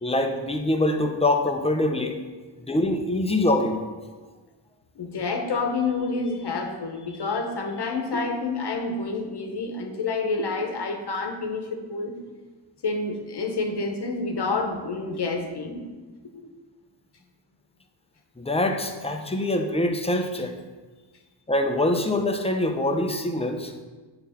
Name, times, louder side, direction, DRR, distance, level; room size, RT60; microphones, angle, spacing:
voice 1, 0.0-2.2 2.6-3.8 18.4-20.5 21.5-23.7, left 1 dB, 15° left, 4 dB, 0.8 m, -24 dB
voice 2, 5.0-12.2 12.8-15.9 16.3-16.5, left 3 dB, 60° left, 4 dB, 1.1 m, -28 dB
9.4 x 3.9 x 5.7 m, 1.3 s
wide cardioid pair, 100°, 45 cm